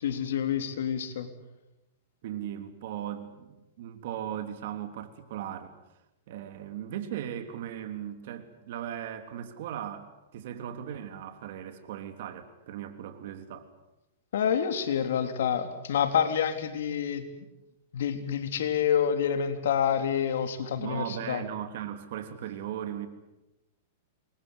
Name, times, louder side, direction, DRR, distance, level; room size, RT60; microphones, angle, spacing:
voice 1, 0.0-1.3 14.3-17.3 17.9-21.4, left 8 dB, 80° left, 8 dB, 3.6 m, -28 dB
voice 2, 2.2-5.7 6.3-13.7 20.8-23.1, right 10 dB, 60° right, 9 dB, 3.4 m, -38 dB
28.0 x 23.0 x 8.3 m, 0.95 s
supercardioid pair, 145°, 0 cm